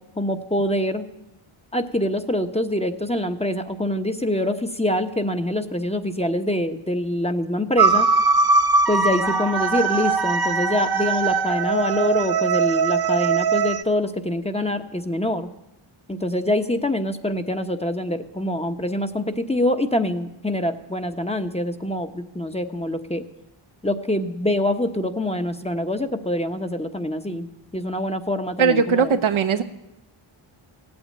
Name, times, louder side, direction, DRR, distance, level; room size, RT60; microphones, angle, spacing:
voice 1, 0.2-1.0 1.7-8.1 8.9-15.5 16.1-23.2 23.8-27.5 27.7-29.1, left 1 dB, 10° left, 6 dB, 1.1 m, -25 dB
sound 1, 7.8-13.8, right 4 dB, 45° right, 0.9 m, -21 dB
voice 2, 28.6-29.6, right 6 dB, 70° right, 7 dB, 1.1 m, -19 dB
16.0 x 8.8 x 8.8 m, 0.91 s
cardioid pair, 65°, 50 cm